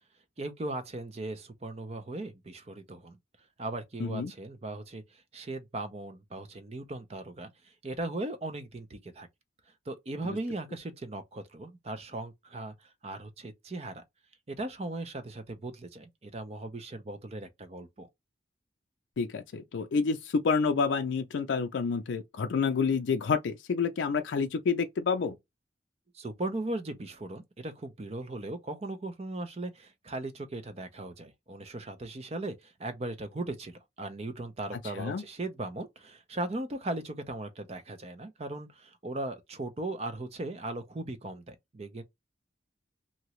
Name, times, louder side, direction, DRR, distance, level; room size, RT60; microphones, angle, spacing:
voice 1, 0.4-3.2 3.6-7.5 7.8-9.3 9.9-14.0 14.5-18.1 26.1-42.0, right 2 dB, 35° right, 0.5 m, -38 dB
voice 2, 4.0-4.3 10.2-10.4 19.2-25.4 35.0-35.2, left 5 dB, 75° left, 0.4 m, -29 dB
2.8 x 2.6 x 3.0 m
head